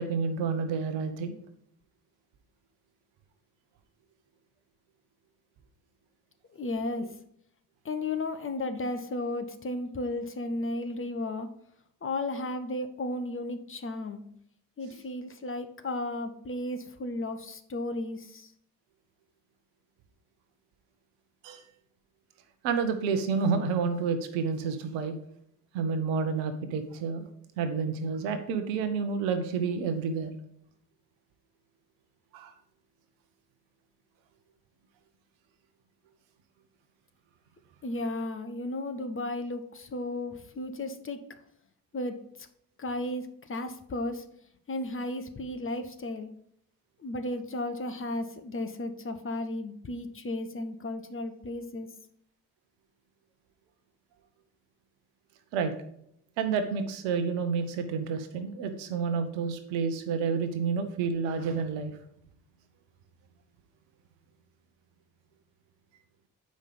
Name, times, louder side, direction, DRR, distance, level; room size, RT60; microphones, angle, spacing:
voice 1, 0.0-1.4 21.4-21.6 22.6-25.2 25.7-27.3 27.6-30.3 32.3-32.5 55.5-55.7 56.4-62.0, right 5 dB, 65° right, 9 dB, 1.0 m, -29 dB
voice 2, 6.5-7.1 7.8-11.5 12.0-14.2 14.8-18.5 37.8-41.2 41.9-42.5 42.8-44.2 44.7-46.3 47.0-51.9, left 2 dB, 25° left, 8 dB, 1.0 m, -34 dB
7.8 x 5.2 x 5.1 m, 0.71 s
figure-of-eight pair, 40°, 49 cm